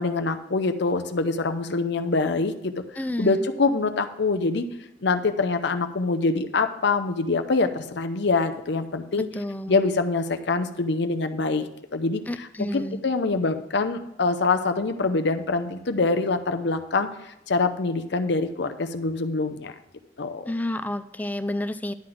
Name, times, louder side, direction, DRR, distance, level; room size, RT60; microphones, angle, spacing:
voice 1, 0.0-2.8 3.2-4.7 5.0-9.3 9.7-12.5 12.7-17.1 17.5-19.7 20.2-20.5, left 3 dB, 60° left, 8 dB, 0.7 m, -25 dB
voice 2, 3.0-3.4 9.2-9.8 12.3-13.0 20.5-21.9, left 1 dB, 10° left, 11 dB, 0.3 m, -30 dB
11.0 x 4.0 x 7.6 m, 0.83 s
head